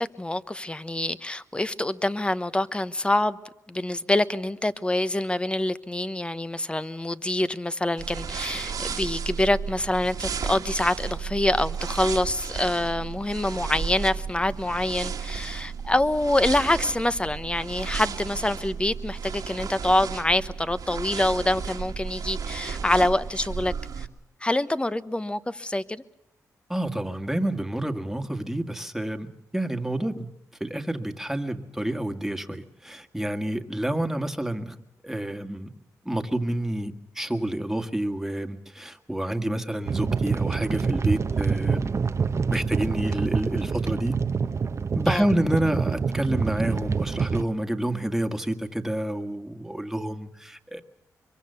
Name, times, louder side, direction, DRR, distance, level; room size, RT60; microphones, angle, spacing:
voice 1, 0.0-3.4 3.7-24.1 24.4-26.0 45.1-45.3, left 1 dB, 15° left, 1.1 m, -26 dB
sound 1, 8.0-24.1, right 6 dB, 65° right, 1.8 m, -34 dB
voice 2, 26.7-30.3 30.6-34.8 35.0-35.7 36.1-42.0 42.5-44.2 45.0-50.8, right 1 dB, 5° right, 1.9 m, -28 dB
sound 2, 39.9-47.4, right 5 dB, 45° right, 0.9 m, -26 dB
24.5 x 23.0 x 6.9 m
cardioid pair, 65°, 7 cm